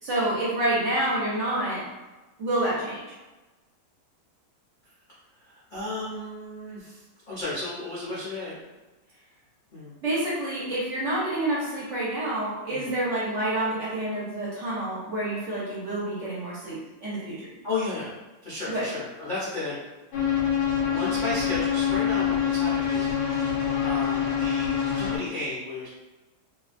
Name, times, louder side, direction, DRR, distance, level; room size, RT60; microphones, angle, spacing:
voice 1, 0.0-1.9 2.4-3.1 10.0-17.5 18.7-18.9, right 1 dB, 50° right, -8 dB, 1.1 m, -28 dB
voice 2, 5.3-8.7 9.7-9.9 12.7-12.9 17.6-18.1 18.4-19.7 20.9-23.5 23.8-25.9, left 2 dB, 55° left, -10 dB, 0.5 m, -34 dB
sound 1, 20.1-25.2, left 8 dB, 85° left, 1.3 m, -25 dB
2.7 x 2.3 x 2.4 m, 1.1 s
omnidirectional pair, 1.8 m